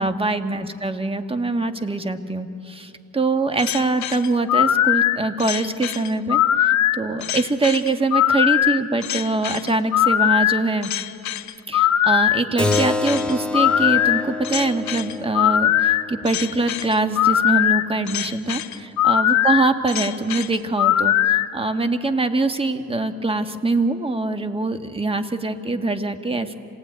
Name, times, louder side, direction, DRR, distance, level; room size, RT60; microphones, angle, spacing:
voice 1, 0.0-10.9 11.7-26.6, right 3 dB, 20° right, 8 dB, 1.5 m, -23 dB
sound 1, 3.6-21.5, left 12 dB, 70° left, 0.9 m, -20 dB
Keyboard (musical), 12.6-17.7, left 2 dB, 5° left, 1.2 m, -28 dB
27.0 x 18.5 x 9.4 m, 2.6 s
cardioid pair, 90°, 30 cm